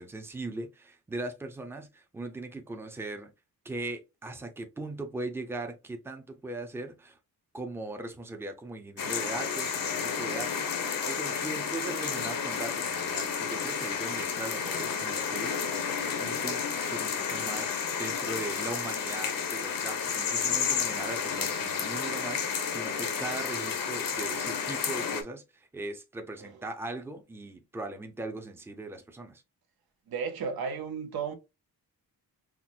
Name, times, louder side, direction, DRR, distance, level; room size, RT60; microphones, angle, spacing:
voice 1, 0.0-3.3 3.6-7.2 7.5-17.7 18.0-29.4, right 2 dB, 5° right, 0.6 m, -39 dB
sound 1, 9.0-25.2, left 6 dB, 65° left, 0.8 m, -31 dB
voice 2, 30.1-31.3, right 6 dB, 75° right, 0.8 m, -33 dB
5.8 x 2.0 x 2.5 m
wide cardioid pair, 120°, 37 cm